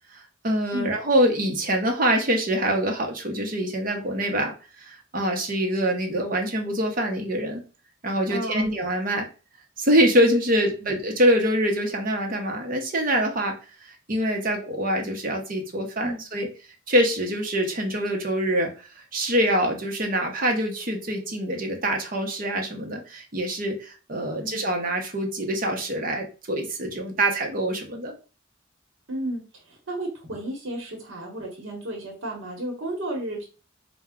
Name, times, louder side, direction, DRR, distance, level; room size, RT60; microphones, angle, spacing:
voice 1, 0.1-7.6 8.0-9.3 9.8-13.5 13.8-16.5 16.9-18.7 19.1-28.1, equal, 45° right, 2 dB, 0.9 m, -25 dB
voice 2, 8.3-8.7 10.8-10.9 16.0-16.2 24.4-24.6 29.1-33.5, right 1 dB, 75° right, 1 dB, 1.1 m, -33 dB
4.3 x 2.3 x 3.6 m, 0.34 s
head